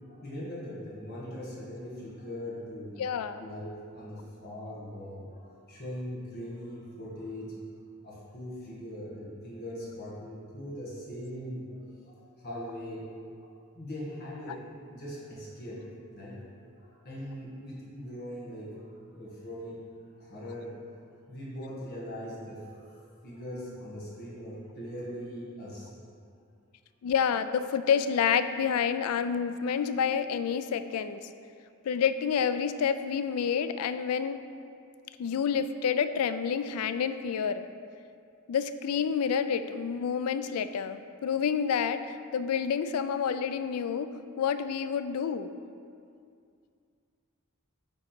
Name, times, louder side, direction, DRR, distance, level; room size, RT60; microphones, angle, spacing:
voice 1, 0.0-3.0 3.4-7.6 8.0-13.1 13.4-14.6 14.9-15.8 16.1-16.4 16.8-19.8 20.2-20.8 21.3-25.9, equal, 45° left, -6 dB, 1.7 m, -41 dB
voice 2, 3.0-3.5 27.0-31.3 31.8-34.4 35.2-37.6 38.5-45.5, left 7 dB, 90° left, 11 dB, 0.3 m, -29 dB
8.9 x 3.8 x 4.5 m, 2.4 s
head